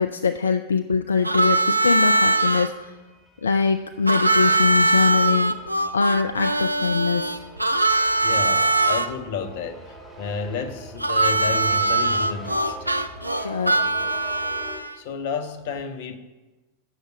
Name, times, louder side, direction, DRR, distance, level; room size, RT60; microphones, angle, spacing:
voice 1, 0.0-2.9 3.4-5.6 5.9-7.4 13.4-13.9, left 5 dB, 70° left, 8 dB, 0.3 m, -23 dB
Harmonica, 1.2-2.7 4.1-9.1 11.0-14.9, right 2 dB, 85° right, 0.4 m, -21 dB
sound 1, 2.0-14.8, equal, ahead, 1.6 m, -44 dB
voice 2, 8.2-12.9 14.9-16.2, left 5 dB, 50° left, 10 dB, 0.8 m, -31 dB
8.9 x 6.7 x 4.7 m, 1.2 s
figure-of-eight pair, 90°, 0 cm